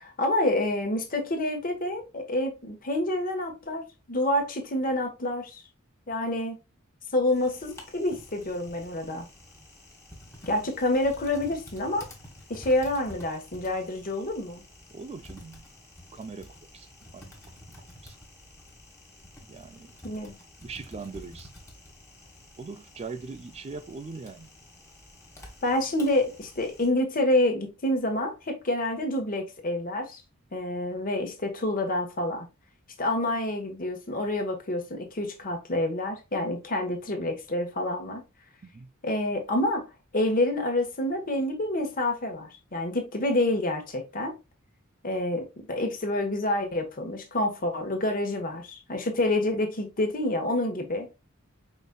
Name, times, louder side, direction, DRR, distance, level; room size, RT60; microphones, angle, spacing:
voice 1, 0.0-5.6 6.1-6.6 7.1-9.3 10.4-12.1 12.5-14.6 20.0-20.4 25.6-30.2 30.5-32.5 33.0-38.2 39.0-39.8 40.1-44.3 45.0-51.1, left 1 dB, 40° left, 1.2 m, -28 dB
Typing, 7.3-26.9, left 1 dB, 15° left, 1.3 m, -49 dB
voice 2, 14.9-15.6 16.1-16.9 17.1-17.6 18.0-18.2 19.5-20.0 20.6-21.5 22.6-24.5 38.6-38.9, right 4 dB, 30° right, 0.4 m, -41 dB
5.1 x 3.9 x 2.2 m
head